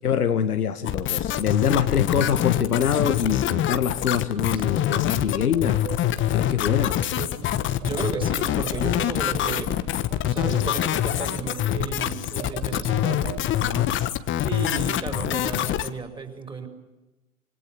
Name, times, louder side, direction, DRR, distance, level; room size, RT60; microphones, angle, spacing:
voice 1, 0.0-5.8 6.3-7.0 7.4-7.5 13.6-13.9, left 7 dB, 80° left, 9 dB, 1.9 m, -25 dB
sound 1, 0.9-15.9, left 12 dB, 25° left, 1.4 m, -25 dB
sound 2, 4.4-13.4, right 7 dB, 55° right, 4.1 m, -38 dB
voice 2, 7.8-10.0 10.3-13.7 14.5-16.7, right 5 dB, 10° right, 6 dB, 5.3 m, -34 dB
27.0 x 24.5 x 8.7 m, 1.1 s
hypercardioid pair, 105°, 45 cm